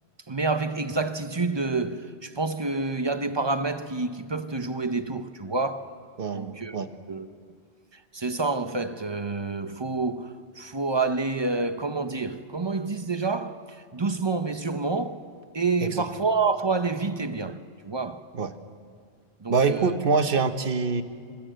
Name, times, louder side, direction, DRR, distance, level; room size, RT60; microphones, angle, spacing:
voice 1, 0.3-6.0 6.3-6.8 7.1-7.3 7.9-15.3 15.5-18.2 19.4-20.0, right 3 dB, 30° right, 0.7 m, -28 dB
voice 2, 6.2-6.9 15.8-16.0 18.3-18.5 19.5-21.0, right 4 dB, 55° right, 1.2 m, -25 dB
27.0 x 16.0 x 7.8 m
omnidirectional pair, 1.1 m